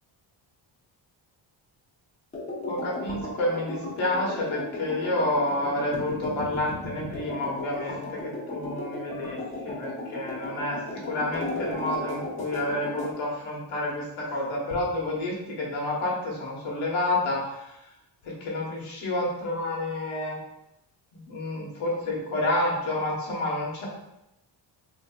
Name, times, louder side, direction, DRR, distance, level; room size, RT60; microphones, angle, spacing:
sound 1, 2.3-13.1, left 2 dB, 15° left, 0.7 m, -35 dB
voice 1, 2.6-9.4 9.6-10.8 11.0-17.7 18.2-20.4 21.3-23.9, left 1 dB, 85° left, -3 dB, 1.2 m, -29 dB
3.7 x 2.7 x 2.3 m, 0.86 s
wide cardioid pair, 170°, 47 cm